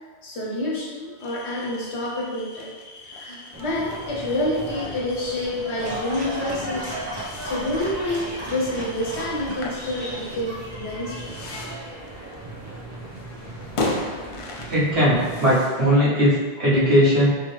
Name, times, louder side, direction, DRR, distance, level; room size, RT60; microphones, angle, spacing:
voice 1, 0.2-2.7 3.0-11.3, left 1 dB, 80° left, -3 dB, 1.2 m, -28 dB
sound 1, 1.2-15.9, left 2 dB, 45° left, 0.4 m, -37 dB
sound 2, 3.5-15.6, right 1 dB, 20° right, 0.6 m, -37 dB
Dog, 5.7-10.7, right 1 dB, 40° right, 1.3 m, -37 dB
voice 2, 14.7-17.3, equal, 70° right, -7 dB, 1.4 m, -19 dB
3.8 x 3.1 x 3.2 m, 1.4 s
omnidirectional pair, 1.1 m